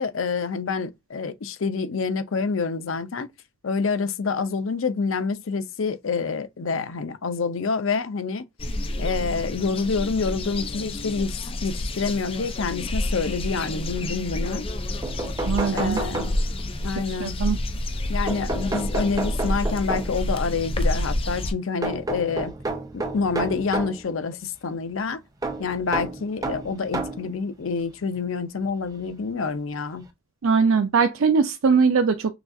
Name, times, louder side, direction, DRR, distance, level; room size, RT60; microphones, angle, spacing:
voice 1, 0.0-3.3 3.6-8.5 9.0-14.7 15.7-16.4 16.8-17.4 18.1-22.6 22.9-25.2 25.6-30.1, left 4 dB, 80° left, 0.6 m, -27 dB
sound 1, 8.6-21.5, left 1 dB, 25° left, 0.4 m, -29 dB
sound 2, 14.7-14.8 15.0-16.8 18.3-20.3 21.8-24.0 25.4-27.3 28.2-28.3 29.6-29.7 30.0-30.1, right 2 dB, 20° right, 0.6 m, -31 dB
voice 2, 15.5-16.0 17.1-17.6 30.4-32.3, right 5 dB, 85° right, 0.5 m, -21 dB
5.9 x 2.4 x 2.6 m
head